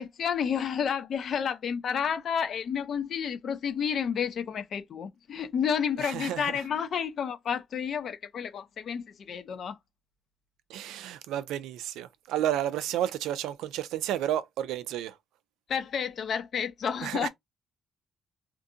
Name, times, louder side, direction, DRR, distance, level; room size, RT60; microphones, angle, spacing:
voice 1, 0.0-9.8 15.7-17.3, left 7 dB, 60° left, 0.5 m, -30 dB
voice 2, 6.0-6.6 10.7-15.2 17.0-17.3, right 11 dB, 90° right, 0.3 m, -31 dB
2.6 x 2.5 x 2.4 m
cardioid pair, 90°, 0 cm